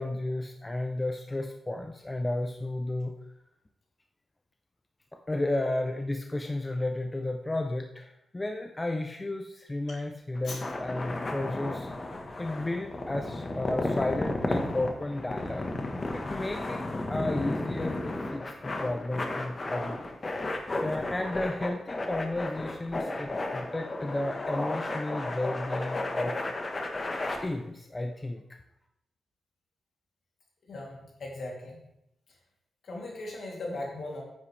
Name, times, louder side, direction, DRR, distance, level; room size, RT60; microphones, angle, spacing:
voice 1, 0.0-3.1 5.1-11.9 12.4-15.7 16.1-16.8 17.1-20.0 20.8-26.4 27.4-28.4, left 2 dB, 20° left, 4 dB, 0.7 m, -33 dB
sound 1, 10.4-27.4, left 2 dB, 35° left, 1.3 m, -33 dB
voice 2, 30.7-31.8 32.8-34.2, left 2 dB, 65° left, -2 dB, 3.0 m, -38 dB
9.4 x 8.4 x 3.4 m, 0.81 s
cardioid pair, 95°, 0 cm